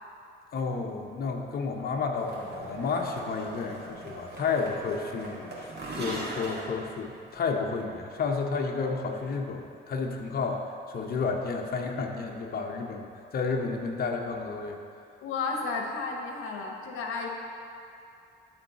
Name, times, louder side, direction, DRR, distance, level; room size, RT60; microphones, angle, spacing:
voice 1, 0.5-10.6 10.9-14.8, left 4 dB, 50° left, 2 dB, 0.8 m, -31 dB
sound 1, 2.1-7.5, right 2 dB, 55° right, 1.9 m, -40 dB
voice 2, 15.2-17.3, left 4 dB, 90° left, 2 dB, 0.7 m, -32 dB
11.5 x 3.9 x 4.1 m, 2.6 s
cardioid pair, 90°, 20 cm